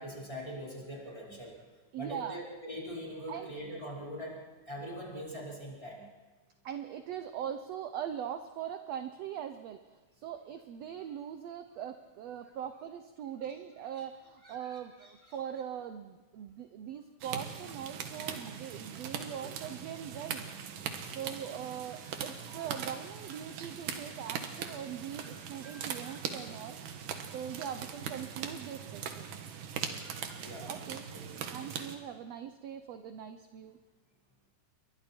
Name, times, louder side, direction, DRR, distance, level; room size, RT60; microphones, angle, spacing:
voice 1, 0.0-1.6 2.0-4.4 4.7-6.1 14.4-15.4 21.1-21.3 22.0-22.1 23.3-23.4 25.1-25.3 25.6-26.2 29.9-31.7, equal, 10° left, -4 dB, 4.9 m, -44 dB
voice 2, 1.9-2.4 3.3-3.5 6.6-20.5 21.0-26.8 27.3-29.4 30.7-31.0 31.5-33.8, right 9 dB, 70° right, 8 dB, 1.7 m, -41 dB
sound 1, 17.2-32.0, right 7 dB, 85° right, 3.1 m, -41 dB
29.0 x 23.5 x 4.5 m, 1.3 s
omnidirectional pair, 3.6 m